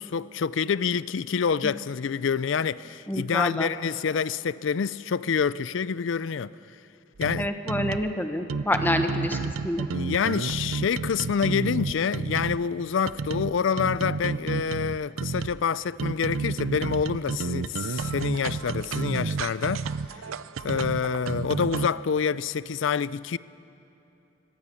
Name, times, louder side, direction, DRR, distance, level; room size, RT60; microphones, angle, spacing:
voice 1, 0.0-6.5 7.2-7.5 9.9-19.9 20.6-23.4, left 6 dB, 70° left, 0.4 m, -27 dB
voice 2, 3.1-3.7 7.4-9.8, left 1 dB, 10° left, 1.1 m, -27 dB
sound 1, 7.2-8.1 8.5-12.6 13.1-15.6 16.0-21.9, right 4 dB, 90° right, 0.5 m, -31 dB
24.5 x 18.5 x 7.1 m
head